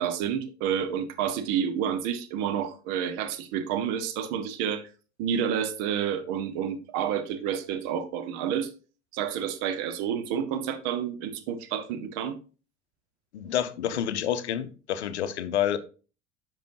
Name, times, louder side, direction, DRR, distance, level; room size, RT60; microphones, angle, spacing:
voice 1, 0.0-4.8 5.2-8.7 9.1-12.4, right 8 dB, 50° right, 1.1 m, -29 dB
voice 2, 13.3-15.8, left 10 dB, 70° left, 0.7 m, -28 dB
10.5 x 5.4 x 2.7 m
figure-of-eight pair, 65°, 34 cm